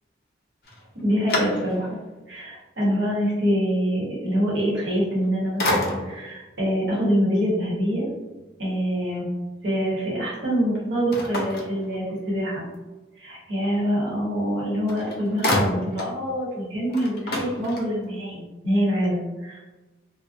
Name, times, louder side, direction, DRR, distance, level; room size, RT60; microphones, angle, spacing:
sound 1, 0.6-2.1 2.6-2.7 4.9-5.3 5.6-6.3 11.1-12.4 14.5-14.6 14.9-16.2 16.5-16.6 16.9-18.2, left 1 dB, 55° left, 0.4 m, -28 dB
voice 1, 0.9-1.9 2.3-8.1 8.6-9.3 9.6-12.6 13.2-19.6, equal, 80° right, -6 dB, 1.0 m, -25 dB
2.4 x 2.1 x 2.4 m, 1.2 s
head